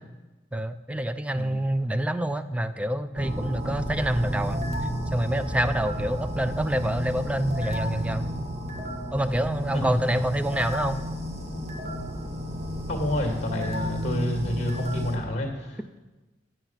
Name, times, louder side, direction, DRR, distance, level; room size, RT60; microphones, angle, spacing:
voice 1, 0.5-4.6 5.1-8.3 9.1-11.0, right 1 dB, 5° right, 12 dB, 0.4 m, -27 dB
sound 1, 3.2-15.2, equal, 40° right, 1.4 m, -32 dB
voice 2, 12.9-16.0, left 1 dB, 40° left, 2 dB, 2.2 m, -29 dB
10.5 x 7.8 x 5.8 m, 1.1 s
head